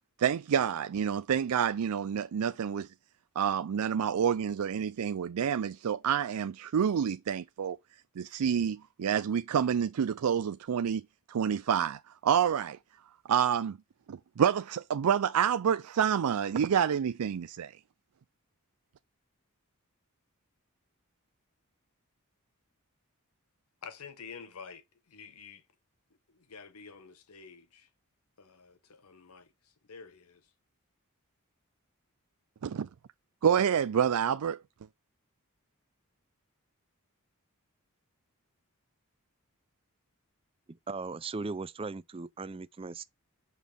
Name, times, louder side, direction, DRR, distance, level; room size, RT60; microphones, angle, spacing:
voice 1, 0.2-2.9 3.4-7.8 8.2-11.0 11.3-12.8 13.3-13.8 14.1-17.7 32.6-32.9 33.4-34.6, right 8 dB, 85° right, 0.4 m, -28 dB
voice 2, 23.8-25.6 26.3-27.9 28.4-30.4, left 6 dB, 85° left, 1.0 m, -49 dB
voice 3, 40.7-43.0, right 3 dB, 25° right, 0.4 m, -38 dB
6.2 x 5.5 x 5.0 m
head